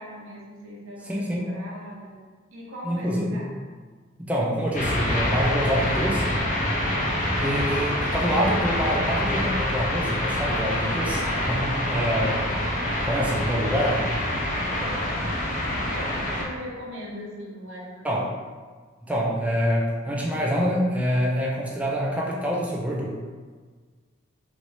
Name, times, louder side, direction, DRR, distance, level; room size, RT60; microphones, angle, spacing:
voice 1, 0.0-2.2 2.5-3.5 14.8-18.3, equal, 80° right, -5 dB, 0.9 m, -40 dB
voice 2, 1.0-1.4 2.8-3.4 4.2-6.3 7.4-12.5 13.0-14.1 18.0-18.3 19.0-23.3, equal, 5° right, -3 dB, 0.3 m, -26 dB
sound 1, 4.7-16.4, left 1 dB, 40° left, 0.6 m, -26 dB
2.9 x 2.6 x 3.1 m, 1.5 s
head